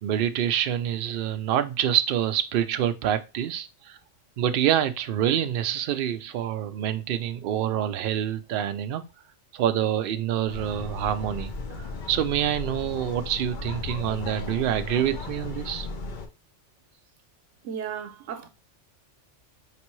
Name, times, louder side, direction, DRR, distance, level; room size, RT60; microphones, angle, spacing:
voice 1, 0.0-4.0 4.4-9.0 9.5-11.5 12.1-15.9, right 10 dB, 60° right, 0.6 m, -26 dB
sound 1, 10.5-16.3, left 4 dB, 50° left, 0.7 m, -36 dB
voice 2, 17.6-18.5, right 8 dB, 85° right, 0.9 m, -34 dB
4.4 x 3.3 x 3.0 m
omnidirectional pair, 1.2 m